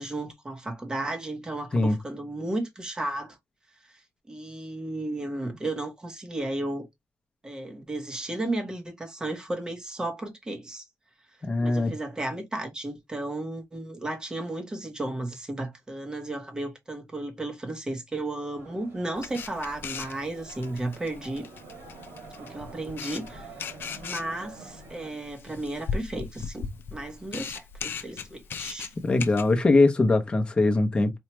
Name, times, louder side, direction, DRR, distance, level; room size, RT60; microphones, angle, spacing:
voice 1, 0.0-3.4 3.9-4.0 4.3-6.9 7.4-10.8 11.6-21.5 22.4-23.5 24.0-26.6 26.9-28.9, right 2 dB, 15° right, 1.0 m, -34 dB
voice 2, 11.4-11.9 29.0-31.1, left 2 dB, 20° left, 0.8 m, -21 dB
sound 1, 18.5-25.1, right 3 dB, 90° right, 2.3 m, -47 dB
Camera, 19.2-29.5, left 6 dB, 50° left, 0.5 m, -38 dB
4.4 x 2.4 x 3.0 m
wide cardioid pair, 165°, 5 cm